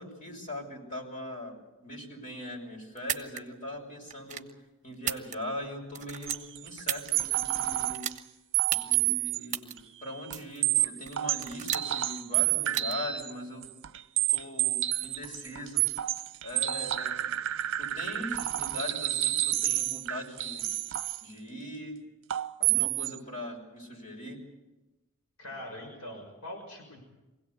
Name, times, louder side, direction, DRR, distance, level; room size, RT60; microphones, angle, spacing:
voice 1, 0.0-1.6 1.8-4.5 4.8-8.1 8.7-13.7 14.3-15.8 16.4-17.3 17.8-20.7 21.2-22.0 22.6-24.4, left 1 dB, 40° left, 0 dB, 6.2 m, -40 dB
sound 1, 3.0-3.4 4.1-4.5 4.9-5.6 5.9-7.1 7.9-8.2 8.7-9.0 9.5-9.7 10.3-10.6 11.1-12.0 12.6-12.9, right 10 dB, 35° right, 1.3 m, -34 dB
sound 2, 6.3-8.1 8.5-9.4 9.8-9.9 10.3-10.4 10.6-13.3 13.6-21.2 22.3-23.2, right 14 dB, 60° right, 0.8 m, -29 dB
voice 2, 25.4-27.0, left 1 dB, 80° left, 3 dB, 6.4 m, -42 dB
24.5 x 17.5 x 8.3 m, 1.1 s
head